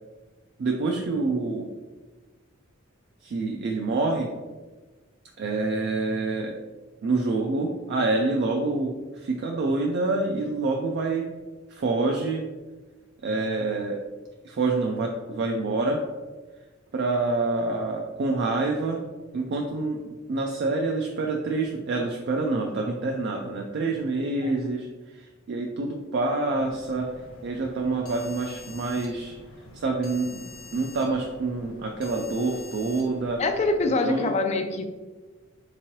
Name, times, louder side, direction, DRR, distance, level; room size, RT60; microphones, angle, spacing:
voice 1, 0.6-1.7 3.2-4.3 5.4-6.5 7.0-11.3 11.7-12.4 13.2-14.0 14.4-16.0 16.9-19.0 19.3-27.1 27.4-29.4 29.7-30.4 30.7-33.4 34.0-34.3, right 3 dB, 55° right, 1 dB, 0.3 m, -27 dB
sound 1, 26.6-33.9, left 2 dB, 75° left, 0.6 m, -46 dB
voice 2, 33.4-34.8, left 3 dB, 30° left, 7 dB, 0.3 m, -25 dB
3.6 x 2.9 x 2.9 m, 1.3 s
head